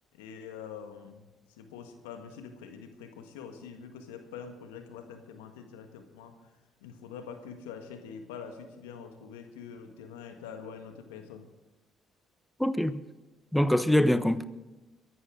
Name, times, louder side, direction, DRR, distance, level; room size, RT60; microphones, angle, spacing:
voice 1, 0.1-1.3 1.6-6.3 6.8-11.5, left 6 dB, 85° left, 1.5 m, -45 dB
voice 2, 12.6-13.0 13.5-14.4, left 1 dB, 5° left, 1.0 m, -24 dB
22.5 x 11.0 x 3.8 m
hypercardioid pair, 55°, 0 cm